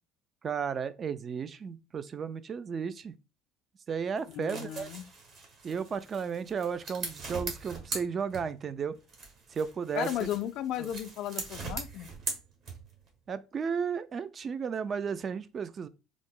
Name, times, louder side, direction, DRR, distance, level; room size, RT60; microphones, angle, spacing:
voice 1, 0.4-3.1 3.9-4.9 5.6-9.0 9.5-10.1 10.8-10.9 13.3-15.9, right 6 dB, 40° right, 0.3 m, -34 dB
sound 1, 4.2-8.7 9.1-13.1, right 3 dB, 55° right, 1.3 m, -41 dB
voice 2, 4.3-5.1 10.0-12.1, left 11 dB, 65° left, 0.3 m, -35 dB
3.6 x 2.0 x 3.6 m
supercardioid pair, 100°, 0 cm